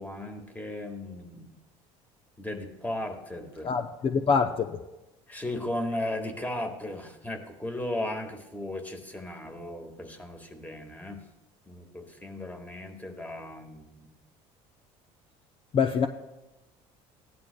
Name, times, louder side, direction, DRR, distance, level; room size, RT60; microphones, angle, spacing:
voice 1, 0.0-1.6 2.4-3.7 5.3-11.2 11.7-14.1, left 1 dB, 10° left, 4 dB, 1.6 m, -36 dB
voice 2, 3.6-4.8 15.7-16.1, left 5 dB, 40° left, 6 dB, 0.6 m, -25 dB
16.5 x 11.0 x 2.2 m, 1.0 s
supercardioid pair, 95°, 14 cm